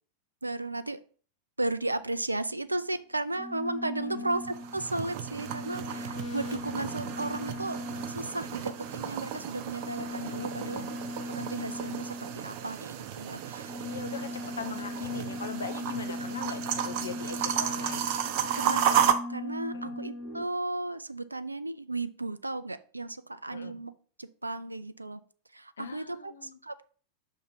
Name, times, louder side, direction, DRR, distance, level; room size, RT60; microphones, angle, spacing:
voice 1, 0.4-1.0 1.6-10.9 11.3-13.8 16.2-16.3 18.6-23.9 24.2-25.2 25.5-26.8, right 2 dB, 85° right, 13 dB, 0.3 m, -35 dB
sound 1, 2.4-2.5 3.3-12.9 13.4-20.4, left 1 dB, 45° left, 2.4 m, -39 dB
sound 2, 4.3-19.1, right 9 dB, 45° right, 0.6 m, -33 dB
voice 2, 10.4-10.9 13.8-18.1 19.7-19.9 23.5-23.7 25.8-26.6, left 5 dB, 70° left, 8 dB, 0.7 m, -40 dB
5.6 x 3.6 x 5.7 m, 0.43 s
figure-of-eight pair, 90°, 0 cm